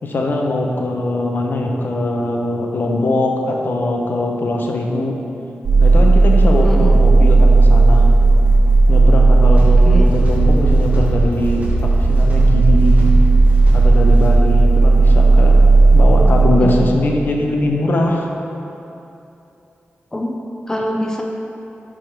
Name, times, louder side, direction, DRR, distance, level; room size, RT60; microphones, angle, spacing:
voice 1, 0.0-5.2 5.8-8.0 8.9-13.1 13.7-15.6 15.9-18.3, left 1 dB, 60° left, 1 dB, 0.7 m, -21 dB
sound 1, 5.6-16.5, right 3 dB, 80° right, 1.1 m, -12 dB
voice 2, 6.6-7.0 9.8-10.1 16.6-16.9 20.1-20.3 20.7-21.2, left 1 dB, 15° left, 1 dB, 0.4 m, -23 dB
sound 2, 9.5-14.6, equal, 35° right, 1.2 m, -27 dB
4.9 x 4.6 x 6.0 m, 2.9 s
wide cardioid pair, 105°, 4 cm